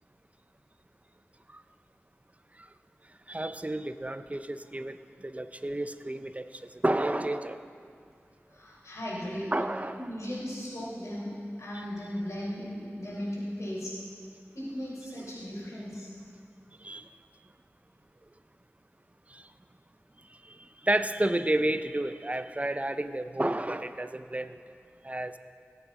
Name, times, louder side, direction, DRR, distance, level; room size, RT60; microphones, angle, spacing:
voice 1, 3.3-7.7 9.5-10.1 16.8-17.1 19.3-19.4 20.4-20.6 20.8-24.6 25.0-25.4, right 1 dB, 25° right, 11 dB, 0.5 m, -31 dB
voice 2, 8.5-9.5 10.0-11.3 11.6-13.9 14.5-16.1, equal, 85° left, -6 dB, 3.6 m, -36 dB
18.5 x 8.9 x 3.6 m, 2.3 s
wide cardioid pair, 40°, 5 cm